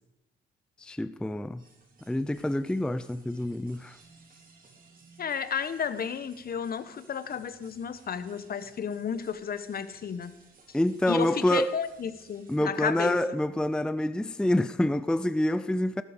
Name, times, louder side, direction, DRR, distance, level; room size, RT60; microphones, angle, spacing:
voice 1, 0.8-1.6 2.1-4.0 10.7-11.8 12.5-16.0, left 1 dB, 5° left, 0.5 m, -27 dB
sound 1, 1.6-12.6, right 4 dB, 45° right, 3.5 m, -58 dB
voice 2, 5.2-10.3 11.1-13.2, left 7 dB, 50° left, 1.1 m, -32 dB
17.5 x 12.5 x 5.1 m
cardioid pair, 90°, 20 cm